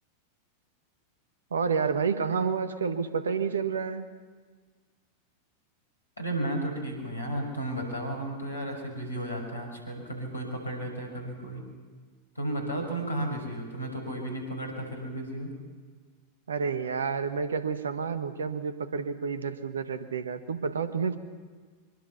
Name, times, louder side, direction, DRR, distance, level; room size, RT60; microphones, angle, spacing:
voice 1, 1.5-4.1 16.5-21.2, right 5 dB, 70° right, 10 dB, 1.5 m, -29 dB
voice 2, 6.2-11.6 12.3-15.5, right 1 dB, 80° left, 3 dB, 6.1 m, -33 dB
24.0 x 23.5 x 5.8 m, 1.5 s
figure-of-eight pair, 90°, 0 cm